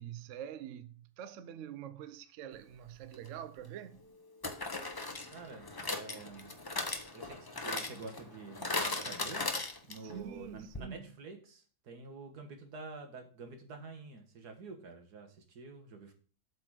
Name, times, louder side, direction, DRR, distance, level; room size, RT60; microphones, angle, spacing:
voice 1, 0.0-4.0 10.0-11.1, right 9 dB, 65° right, 0.9 m, -45 dB
sound 1, 3.1-3.3 4.4-10.2 10.4-10.5 10.7-10.8, left 3 dB, 30° left, 0.4 m, -38 dB
voice 2, 5.3-6.6 7.1-16.1, right 4 dB, 90° right, 1.9 m, -48 dB
7.7 x 4.2 x 6.3 m
omnidirectional pair, 1.6 m